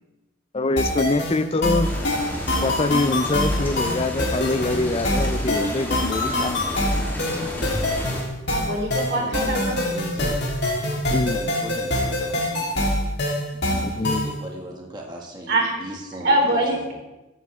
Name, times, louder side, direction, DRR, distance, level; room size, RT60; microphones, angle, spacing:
voice 1, 0.5-1.9 2.6-6.7 7.2-7.3 11.1-11.4 13.8-14.3, left 2 dB, 30° left, 11 dB, 0.4 m, -24 dB
sound 1, 0.8-14.4, left 1 dB, 55° left, 3.5 m, -25 dB
sound 2, 1.8-8.2, left 1 dB, 10° left, 3.1 m, -32 dB
voice 2, 8.5-9.8 13.5-13.8 15.5-15.7 16.2-16.8, right 1 dB, 55° right, 0 dB, 3.9 m, -24 dB
voice 3, 9.1-10.4 11.3-12.9 14.0-17.0, equal, 20° right, -1 dB, 1.9 m, -38 dB
16.0 x 13.5 x 3.6 m, 1.0 s
head